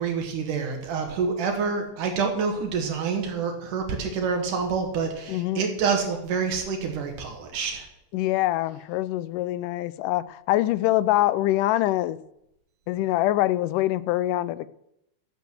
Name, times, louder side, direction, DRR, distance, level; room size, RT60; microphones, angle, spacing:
voice 1, 0.0-7.9, right 5 dB, 80° right, 3 dB, 3.1 m, -27 dB
voice 2, 5.3-5.6 8.1-12.2 12.9-14.7, left 15 dB, 90° left, 16 dB, 2.2 m, -24 dB
12.5 x 8.4 x 6.3 m, 0.81 s
omnidirectional pair, 3.6 m